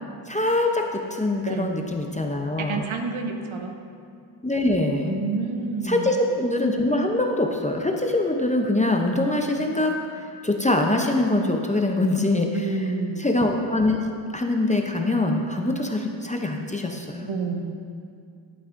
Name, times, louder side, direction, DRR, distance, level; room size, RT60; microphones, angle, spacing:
voice 1, 0.3-2.9 4.4-5.1 5.9-10.0 10.4-12.5 13.2-14.0 14.3-17.3, left 2 dB, 15° left, 2 dB, 0.5 m, -23 dB
voice 2, 2.6-3.8 5.0-6.2 12.5-13.3 17.3-17.8, right 4 dB, 80° right, 4 dB, 0.9 m, -29 dB
11.0 x 8.5 x 2.5 m, 2.4 s
wide cardioid pair, 140°, 47 cm